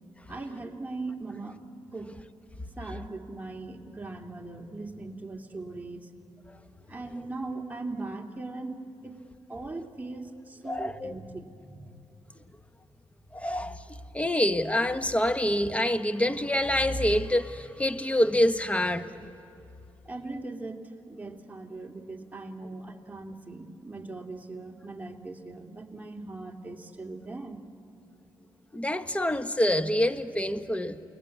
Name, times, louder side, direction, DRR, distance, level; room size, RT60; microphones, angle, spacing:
voice 1, 0.3-1.6 1.9-2.1 2.8-6.1 6.9-9.2 9.5-12.0 20.1-27.6, right 2 dB, 15° right, 2.5 m, -39 dB
voice 2, 10.6-11.1 13.3-13.8 14.1-19.1 28.7-31.0, left 1 dB, 15° left, 1.3 m, -26 dB
29.0 x 20.5 x 8.3 m
supercardioid pair, 55°, 10 cm